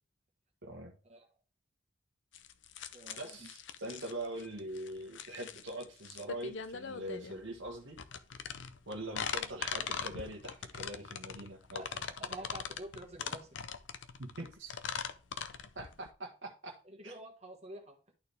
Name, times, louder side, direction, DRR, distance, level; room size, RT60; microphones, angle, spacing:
voice 1, 0.6-1.0 3.2-8.0 8.9-11.8 14.2-14.7 15.7-16.8 17.0-17.1, right 1 dB, 75° right, 1.2 m, -43 dB
sound 1, 2.3-16.1, left 6 dB, 70° left, 0.6 m, -41 dB
voice 2, 2.9-3.5 11.8-13.5 16.8-18.0, right 1 dB, 35° right, 1.4 m, -48 dB
11.0 x 4.3 x 3.4 m
head